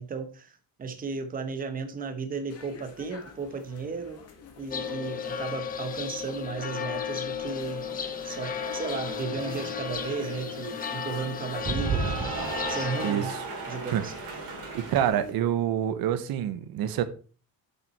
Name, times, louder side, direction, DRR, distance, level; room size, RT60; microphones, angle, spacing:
voice 1, 0.0-4.2 4.6-7.9 8.2-12.3 12.7-13.3 13.7-14.1, right 5 dB, 25° right, 0.9 m, -35 dB
sound 1, 2.5-15.3, left 4 dB, 45° left, 1.6 m, -48 dB
sound 2, 4.7-13.1, left 7 dB, 25° left, 0.6 m, -34 dB
Cheering / Applause, 7.4-15.1, right 4 dB, 60° right, 2.6 m, -36 dB
voice 2, 14.7-17.0, right 10 dB, 80° right, 0.9 m, -26 dB
7.3 x 5.7 x 4.3 m
cardioid pair, 170°, 35 cm